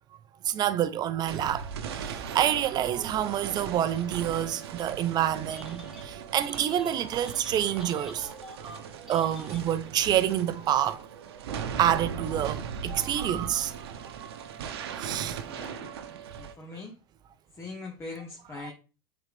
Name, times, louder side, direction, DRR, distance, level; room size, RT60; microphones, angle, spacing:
voice 1, 0.4-1.7 1.9-8.3 8.6-8.7 9.1-11.0 11.8-13.7 14.0-14.3 15.0-15.4, right 11 dB, 30° right, 0.6 m, -27 dB
sound 1, 1.3-16.5, right 7 dB, 80° right, 0.8 m, -39 dB
Telephone, 5.5-6.1 6.4-10.1, equal, ahead, 2.0 m, -48 dB
voice 2, 15.5-15.9 16.4-17.0 17.5-18.7, left 3 dB, 20° left, 1.1 m, -41 dB
7.7 x 4.0 x 3.4 m
supercardioid pair, 125°, 13 cm